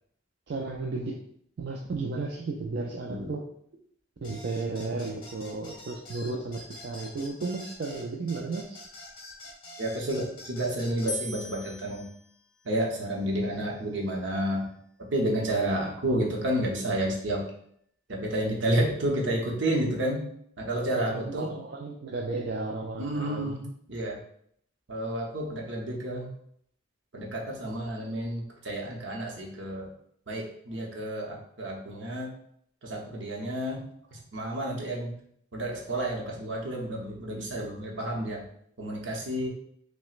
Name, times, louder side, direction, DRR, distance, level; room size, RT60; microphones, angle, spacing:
voice 1, 0.5-1.2 1.6-3.4 4.2-8.8 20.9-23.6, right 3 dB, 55° right, 0 dB, 0.4 m, -34 dB
sound 1, 4.2-11.1, left 1 dB, 25° left, 0.8 m, -46 dB
voice 2, 9.8-12.0 12.6-14.7 15.1-17.5 18.1-20.2 20.6-21.5 23.0-24.2 24.9-26.3 27.1-29.9 30.3-32.3 32.8-33.8 34.3-35.1 35.5-38.4 38.8-39.5, right 1 dB, 70° right, -1 dB, 0.8 m, -30 dB
sound 2, 11.1-14.3, left 1 dB, 55° left, 0.4 m, -42 dB
5.9 x 2.1 x 2.4 m, 0.67 s
head